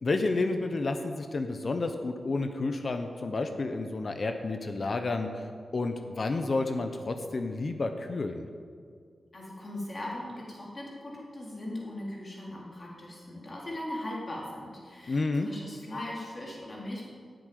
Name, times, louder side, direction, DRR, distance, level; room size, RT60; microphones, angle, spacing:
voice 1, 0.0-5.5 5.7-8.5 15.1-15.5, left 3 dB, 50° left, 6 dB, 0.9 m, -30 dB
voice 2, 9.3-17.1, left 1 dB, 35° left, -4 dB, 3.6 m, -39 dB
9.6 x 7.9 x 9.5 m, 2.1 s
wide cardioid pair, 90°, 0 cm